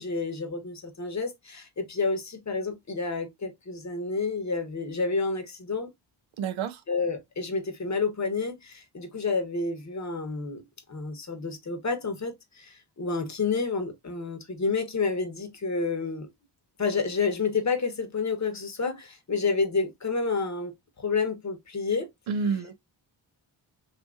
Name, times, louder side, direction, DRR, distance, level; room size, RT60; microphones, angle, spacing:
voice 1, 0.0-5.9 6.9-10.6 10.9-16.3 16.8-22.1, left 4 dB, 35° left, 0.9 m, -29 dB
voice 2, 6.4-6.8 22.3-22.8, right 5 dB, 70° right, 0.6 m, -29 dB
2.8 x 2.5 x 2.3 m
supercardioid pair, 45°, 49 cm